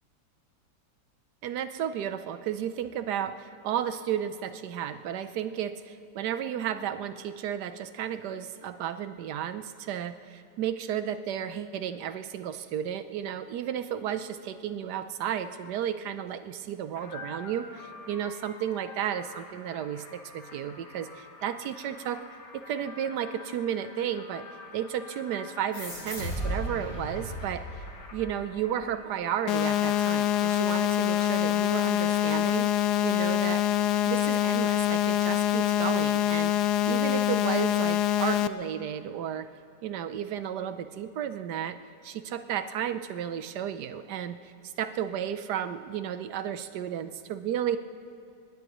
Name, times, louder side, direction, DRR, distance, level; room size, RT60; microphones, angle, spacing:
voice 1, 1.4-22.2 22.5-24.4 24.7-27.8 28.1-33.7 34.1-39.5 39.8-41.8 42.0-47.8, right 9 dB, 70° right, 11 dB, 1.2 m, -33 dB
sound 1, 17.0-32.5, left 3 dB, 55° left, 1.9 m, -48 dB
sound 2, 25.7-28.8, right 1 dB, 35° left, 3.6 m, -36 dB
sound 3, 29.5-38.5, left 11 dB, 70° left, 1.0 m, -25 dB
23.5 x 20.0 x 3.1 m, 2.5 s
omnidirectional pair, 1.9 m